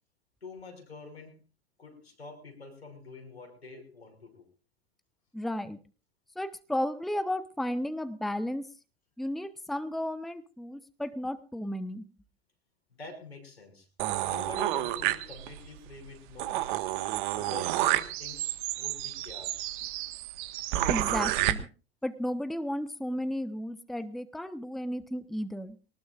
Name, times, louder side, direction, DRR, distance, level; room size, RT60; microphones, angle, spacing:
voice 1, 0.4-1.4 1.8-4.5 13.0-13.9 14.3-16.9 17.3-18.5 18.8-19.8, left 4 dB, 85° left, 3 dB, 6.0 m, -46 dB
voice 2, 5.3-5.8 6.3-8.6 9.2-12.0 20.9-21.7 22.0-25.8, left 1 dB, ahead, 12 dB, 1.1 m, -33 dB
sound 1, 14.0-15.7 16.1-16.2 16.4-21.5, right 15 dB, 50° right, 1.6 m, -30 dB
23.5 x 19.0 x 2.5 m, 0.35 s
figure-of-eight pair, 90°, 31 cm